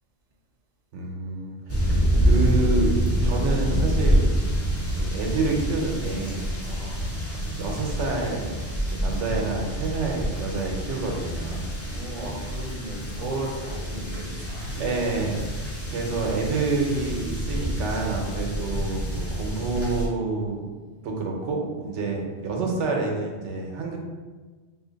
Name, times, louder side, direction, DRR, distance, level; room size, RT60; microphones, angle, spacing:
voice 1, 0.9-4.3 5.0-6.5 7.5-8.5 8.9-11.7 14.8-20.6 21.0-24.0, right 3 dB, 85° right, 0 dB, 1.0 m, -28 dB
sound 1, 1.7-20.1, equal, 20° left, 0.4 m, -27 dB
sound 2, 3.7-19.2, left 1 dB, 55° left, 0.8 m, -38 dB
voice 2, 11.9-15.1 15.7-15.9 19.3-19.4 21.9-22.2, right 1 dB, 35° right, -2 dB, 0.6 m, -36 dB
2.8 x 2.5 x 3.8 m, 1.4 s
omnidirectional pair, 1.2 m